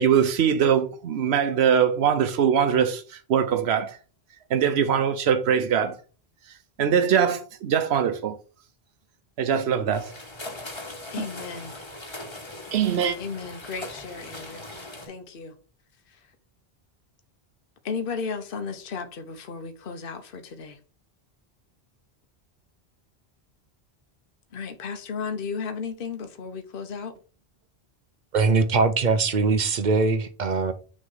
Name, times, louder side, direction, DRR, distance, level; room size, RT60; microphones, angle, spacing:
voice 1, 0.0-4.0 4.5-6.0 6.8-8.4 9.4-10.1 12.7-13.2, right 8 dB, 90° right, 1.0 m, -22 dB
sound 1, 9.9-15.1, left 2 dB, 25° left, 1.3 m, -40 dB
voice 2, 11.1-11.7 13.2-14.7 15.1-15.5 16.1-16.2 17.8-20.8 24.5-27.2, left 5 dB, 60° left, 1.0 m, -34 dB
voice 3, 28.3-30.7, right 4 dB, 50° right, 0.8 m, -22 dB
6.3 x 3.2 x 5.5 m
omnidirectional pair, 1.0 m